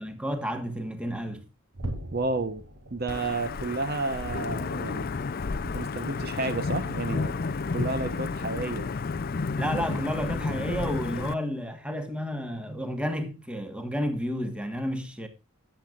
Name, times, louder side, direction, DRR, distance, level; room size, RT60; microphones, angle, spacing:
voice 1, 0.0-1.5 9.6-15.3, equal, 5° right, 1.3 m, -31 dB
sound 1, 1.7-8.4 8.8-9.1 9.5-9.6 10.2-10.3, right 1 dB, 70° right, 3.3 m, -44 dB
voice 2, 2.1-2.6 2.9-5.1 5.6-7.4 7.7-8.9, right 3 dB, 45° right, 0.9 m, -31 dB
Wind / Thunder / Rain, 3.1-11.3, left 4 dB, 40° left, 0.4 m, -31 dB
19.5 x 8.0 x 2.4 m
head